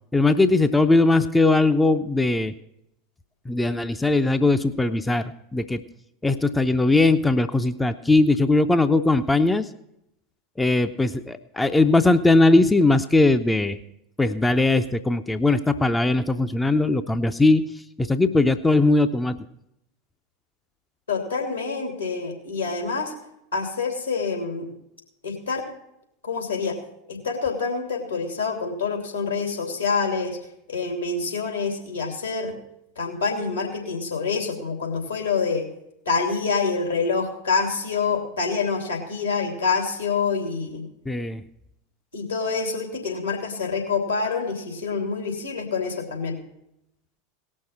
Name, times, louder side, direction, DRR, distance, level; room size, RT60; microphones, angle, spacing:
voice 1, 0.1-2.5 3.5-5.8 6.2-9.7 10.6-13.8 14.2-17.7 18.0-19.5 41.1-41.4, left 2 dB, 10° left, 9 dB, 0.5 m, -20 dB
voice 2, 21.1-23.1 23.5-24.7 25.2-25.7 26.2-26.8 27.1-30.4 30.7-32.6 33.0-35.7 36.0-40.8 42.1-46.4, left 5 dB, 80° left, 2 dB, 2.8 m, -26 dB
18.0 x 6.4 x 5.7 m, 0.80 s
figure-of-eight pair, 80°, 0 cm